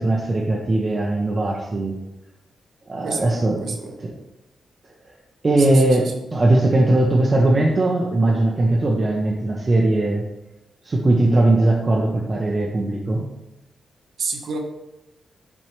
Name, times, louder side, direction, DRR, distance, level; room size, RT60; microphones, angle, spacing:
voice 1, 0.0-2.0 2.9-3.8 4.0-4.1 5.4-10.2 10.8-13.3, right 2 dB, 30° right, -2 dB, 0.6 m, -19 dB
voice 2, 3.0-4.0 5.6-6.1 14.2-14.6, right 4 dB, 55° right, 3 dB, 0.9 m, -30 dB
7.3 x 4.4 x 3.1 m, 0.96 s
wide cardioid pair, 150°, 0 cm